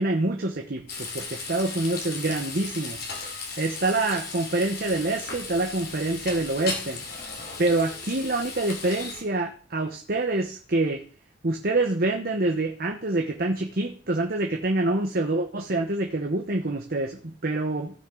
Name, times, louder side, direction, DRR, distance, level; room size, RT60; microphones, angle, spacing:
voice 1, 0.0-3.0 3.6-7.0 7.6-11.0 11.4-18.0, right 2 dB, 55° right, 3 dB, 1.1 m, -26 dB
Frying (food), 0.9-9.2, left 4 dB, 60° left, 2.8 m, -36 dB
16.0 x 6.0 x 3.9 m, 0.40 s
head